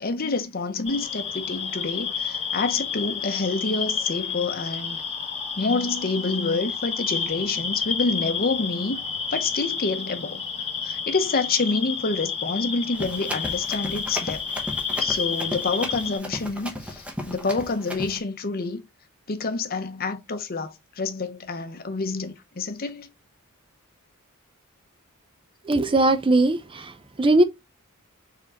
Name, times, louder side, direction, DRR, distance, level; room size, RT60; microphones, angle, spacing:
voice 1, 0.0-5.0 5.6-9.0 9.3-10.4 10.8-14.5 15.0-18.8 19.3-23.1, left 3 dB, 45° left, 0.8 m, -27 dB
sound 1, 0.9-16.2, left 6 dB, 30° left, 1.4 m, -30 dB
Run, 12.9-18.2, equal, 5° right, 0.9 m, -35 dB
voice 2, 25.6-27.4, right 2 dB, 25° right, 0.5 m, -20 dB
4.6 x 3.6 x 2.9 m
head